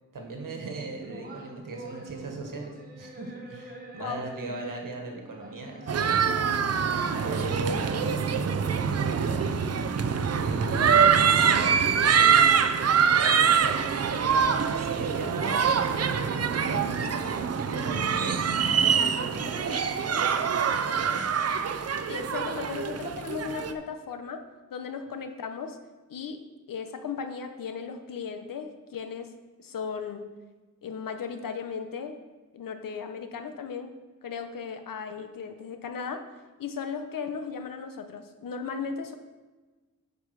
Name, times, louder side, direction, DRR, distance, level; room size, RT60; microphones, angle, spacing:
voice 1, 0.1-6.3 7.2-8.2 8.7-9.4 10.3-14.2 14.5-16.2 16.5-18.5 18.8-21.5, right 2 dB, 75° right, 2 dB, 1.6 m, -38 dB
sound 1, 1.0-10.0, right 2 dB, 25° right, 1.4 m, -45 dB
sound 2, 5.9-23.7, right 7 dB, 50° right, 0.5 m, -24 dB
voice 2, 22.1-24.4 24.7-25.8 26.1-26.4 26.7-29.3 29.6-30.2 30.8-32.2 32.5-33.9 34.2-36.2 36.6-39.1, left 6 dB, 80° left, 7 dB, 0.9 m, -36 dB
9.4 x 5.3 x 4.9 m, 1.3 s
wide cardioid pair, 150°, 33 cm